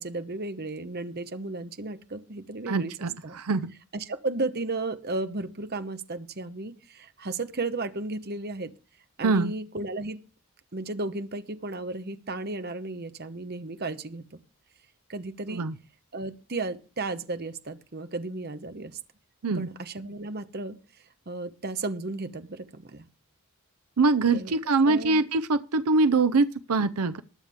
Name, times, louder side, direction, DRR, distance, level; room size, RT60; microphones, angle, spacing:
voice 1, 0.0-2.9 3.2-3.4 3.9-8.7 9.2-10.2 10.7-14.2 15.1-15.7 16.1-19.0 19.5-20.8 21.3-23.1 24.3-24.6 24.8-25.2, right 2 dB, 45° right, 1.0 m, -34 dB
voice 2, 2.7-3.7 9.2-9.5 15.5-15.7 19.4-19.7 24.0-27.2, right 3 dB, 80° right, 0.6 m, -24 dB
20.0 x 7.2 x 3.6 m
head